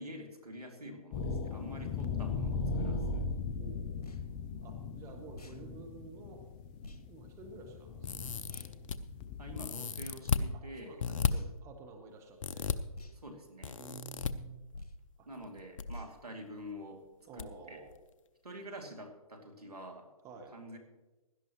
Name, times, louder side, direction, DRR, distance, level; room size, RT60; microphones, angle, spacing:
voice 1, 0.0-3.3 9.4-11.0 13.1-13.8 15.3-17.0 17.3-17.8 18.4-20.1 20.5-20.8, equal, 85° right, 3 dB, 2.7 m, -47 dB
sound 1, 1.1-9.7, left 4 dB, 20° left, 0.5 m, -38 dB
voice 2, 3.6-4.1 4.6-6.4 7.1-8.3 10.5-12.7 13.8-14.7 15.2-15.3 17.3-17.9 20.2-20.5, right 4 dB, 15° right, 3 dB, 1.2 m, -51 dB
sound 2, 3.9-4.2 5.3-5.6 6.8-7.0 8.4-8.7 9.9-10.2 11.2-11.6 12.9-13.2 14.7-15.0 15.8-16.1, left 1 dB, 85° left, 1.3 m, -46 dB
sound 3, 8.0-9.0 9.5-10.5 11.0-11.3 12.4-12.8 13.6-14.3 15.4-15.8 16.1-16.2 17.4-17.5 17.9-18.0, left 7 dB, 60° left, 0.7 m, -34 dB
16.5 x 11.5 x 3.1 m, 1.1 s
figure-of-eight pair, 140°, 19 cm